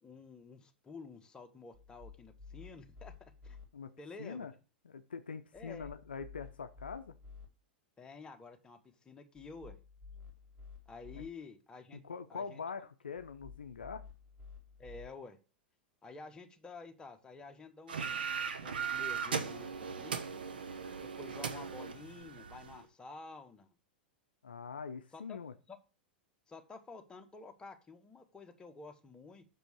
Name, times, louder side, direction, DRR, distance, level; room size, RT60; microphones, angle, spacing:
voice 1, 0.0-3.1 3.4-3.6 4.0-4.5 5.5-5.9 8.0-8.8 9.0-9.8 10.9-12.0 12.3-12.6 14.8-15.4 16.0-18.2 18.6-20.2 21.0-23.7 25.1-25.4 25.7-25.8 26.5-29.5, left 4 dB, 15° left, 1.2 m, -50 dB
sound 1, 1.7-3.7 5.5-7.5 9.3-11.3 13.2-15.1, left 5 dB, 30° right, 2.6 m, -53 dB
voice 2, 3.7-4.5 4.8-7.1 12.0-14.0 24.4-25.5, left 5 dB, 80° left, 0.6 m, -43 dB
sound 2, 17.9-22.8, right 6 dB, 75° right, 1.0 m, -38 dB
6.3 x 5.1 x 6.3 m
figure-of-eight pair, 95°, 5 cm